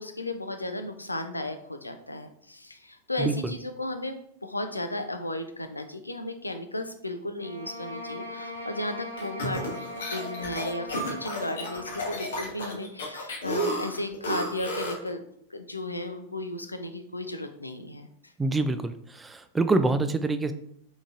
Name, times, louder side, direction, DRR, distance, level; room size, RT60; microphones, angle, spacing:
voice 1, 0.0-15.2 15.5-18.1, left 1 dB, 85° left, 7 dB, 0.4 m, -35 dB
sound 1, 7.4-12.2, left 1 dB, 85° right, 0.6 m, -40 dB
sound 2, 9.2-15.1, equal, 65° left, 0.9 m, -32 dB
voice 2, 18.4-20.5, right 3 dB, 10° right, 10 dB, 0.3 m, -26 dB
3.9 x 3.7 x 2.4 m, 0.69 s
figure-of-eight pair, 90°, 0 cm